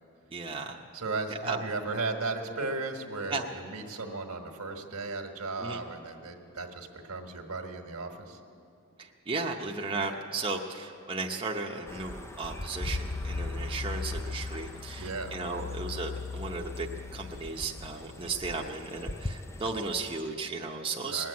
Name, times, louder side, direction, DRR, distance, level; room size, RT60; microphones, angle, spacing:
voice 1, 0.3-0.8 1.4-1.6 3.3-3.4 5.6-5.8 9.0-21.3, right 3 dB, 25° right, 0 dB, 0.7 m, -35 dB
voice 2, 0.9-8.4 15.0-15.3 21.1-21.3, right 3 dB, 85° right, 4 dB, 1.4 m, -35 dB
sound 1, 11.9-20.2, left 3 dB, 10° left, 0.4 m, -38 dB
20.0 x 7.7 x 9.5 m, 2.6 s
head